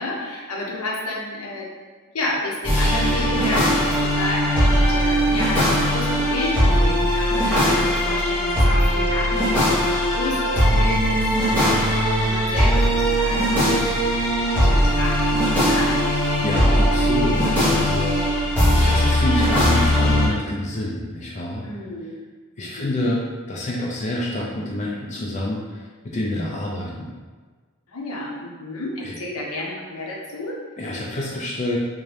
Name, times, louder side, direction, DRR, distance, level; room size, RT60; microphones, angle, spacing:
voice 1, 0.0-1.7 2.1-14.3 14.6-16.0 21.6-22.2 22.6-23.2 27.9-30.6, left 2 dB, 70° left, -2 dB, 0.8 m, -31 dB
sound 1, 2.6-20.3, equal, 10° left, 1.2 m, -19 dB
voice 2, 16.4-21.6 22.6-23.2 23.5-27.1 29.0-29.2 30.8-31.8, left 1 dB, 30° left, -4 dB, 0.4 m, -28 dB
3.7 x 2.6 x 3.2 m, 1.4 s
head